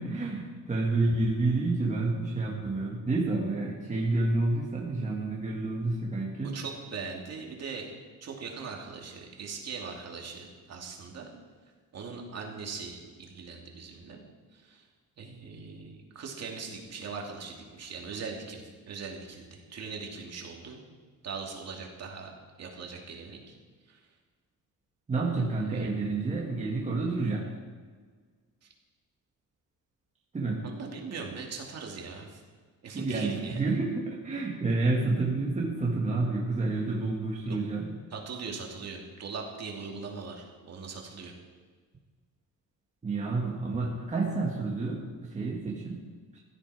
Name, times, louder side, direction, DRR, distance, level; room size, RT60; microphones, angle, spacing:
voice 1, 0.0-6.6 25.1-27.5 30.3-30.6 32.9-37.9 43.0-46.0 46.3-46.4, right 3 dB, 20° right, -2 dB, 1.8 m, -29 dB
voice 2, 6.5-7.9 8.2-11.3 11.9-14.2 14.5-14.9 15.2-20.8 21.2-22.3 22.6-23.5 23.9-24.0 25.6-25.9 28.6-28.7 30.6-32.4 32.8-33.6 37.5-37.6 38.1-41.3, right 5 dB, 50° right, 0 dB, 2.5 m, -40 dB
16.0 x 12.5 x 4.9 m, 1.5 s
cardioid pair, 160°, 33 cm